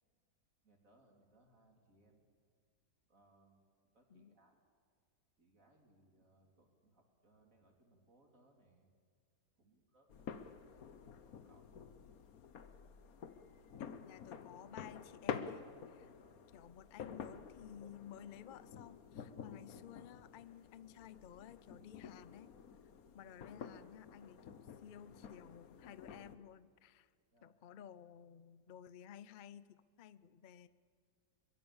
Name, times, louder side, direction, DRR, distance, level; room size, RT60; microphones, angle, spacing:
voice 1, 0.6-2.2 3.1-3.6 3.9-4.6 5.4-8.9 9.6-10.9 11.2-11.7 16.2-16.5 27.3-27.6, right 2 dB, 50° right, 2 dB, 4.0 m, -70 dB
sound 1, 10.1-26.4, left 7 dB, 60° left, 1.5 m, -50 dB
voice 2, 13.8-16.1 16.5-22.5 23.1-24.5 24.8-27.1 27.4-30.7, left 9 dB, 80° left, 16 dB, 0.4 m, -55 dB
24.0 x 21.5 x 7.2 m, 2.1 s
omnidirectional pair, 1.8 m